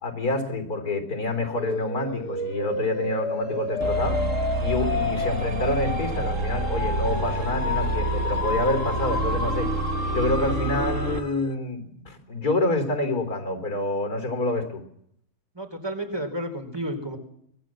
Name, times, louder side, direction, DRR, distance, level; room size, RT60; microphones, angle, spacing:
voice 1, 0.0-4.2 4.6-9.7 10.1-14.8, left 2 dB, 70° left, 7 dB, 4.2 m, -27 dB
sound 1, 1.6-11.4, left 3 dB, 85° left, 2.5 m, -31 dB
sound 2, 3.8-11.3, right 3 dB, 55° right, 1.8 m, -28 dB
voice 2, 15.6-17.2, right 1 dB, 15° right, 6 dB, 4.0 m, -31 dB
25.0 x 20.0 x 7.6 m, 0.72 s
omnidirectional pair, 1.7 m